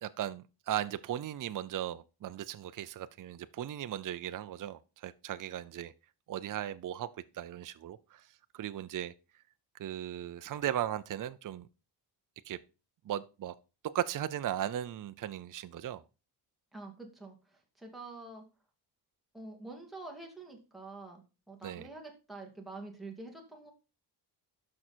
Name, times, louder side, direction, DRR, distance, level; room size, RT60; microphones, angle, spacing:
voice 1, 0.0-5.9 6.3-7.1 7.3-8.3 8.5-9.1 9.8-11.7 12.4-12.6 13.0-13.5 13.9-16.0 21.6-21.9, right 11 dB, 50° right, 0.6 m, -37 dB
voice 2, 16.7-18.4 19.3-23.7, right 2 dB, ahead, 2.6 m, -47 dB
11.0 x 6.2 x 4.4 m
cardioid pair, 120°, 41 cm